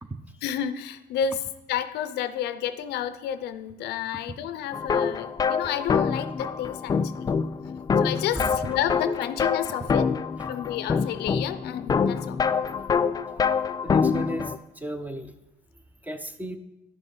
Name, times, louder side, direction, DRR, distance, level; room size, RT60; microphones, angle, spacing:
voice 1, 0.4-7.3 8.0-10.1 10.5-12.4, left 9 dB, 75° left, 12 dB, 0.5 m, -31 dB
sound 1, 4.7-14.6, left 6 dB, 20° left, 0.3 m, -26 dB
voice 2, 13.8-14.5 14.8-15.3 16.0-16.6, right 1 dB, 10° right, 8 dB, 0.7 m, -34 dB
10.5 x 6.3 x 3.8 m, 0.94 s
cardioid pair, 110°, 17 cm